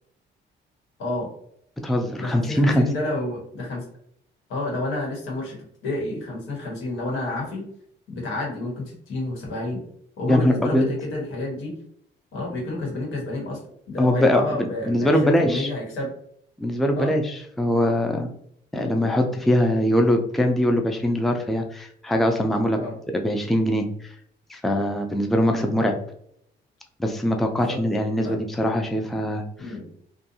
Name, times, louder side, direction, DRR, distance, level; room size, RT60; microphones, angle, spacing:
voice 1, 1.0-1.3 2.2-3.8 4.5-5.6 5.8-7.7 8.1-9.8 10.2-11.8 12.3-13.6 13.9-16.1 16.9-17.2 18.7-19.0 22.8-23.0 25.5-25.7 27.5-27.8 28.2-28.4 29.6-29.9, left 2 dB, 85° left, -2 dB, 1.3 m, -30 dB
voice 2, 1.8-2.9 10.3-10.9 14.0-15.7 16.6-18.3 18.7-22.8 23.1-24.1 24.5-26.0 27.0-29.4, left 1 dB, ahead, 3 dB, 0.4 m, -22 dB
2.5 x 2.3 x 2.7 m, 0.69 s
cardioid pair, 90°, 20 cm